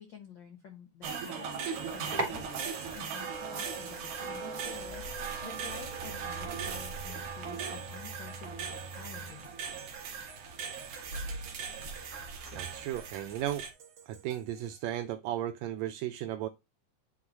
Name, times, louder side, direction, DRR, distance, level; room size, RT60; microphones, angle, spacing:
voice 1, 0.0-1.6 1.9-9.5, left 7 dB, 80° left, 1.0 m, -50 dB
sound 1, 1.0-13.7, right 5 dB, 70° right, 2.6 m, -39 dB
sound 2, 1.7-9.3, right 2 dB, 35° right, 1.9 m, -43 dB
sound 3, 4.4-15.0, right 7 dB, 50° right, 2.6 m, -55 dB
voice 2, 12.5-13.7 14.1-16.5, right 12 dB, 85° right, 1.6 m, -35 dB
9.5 x 4.0 x 2.9 m
omnidirectional pair, 3.6 m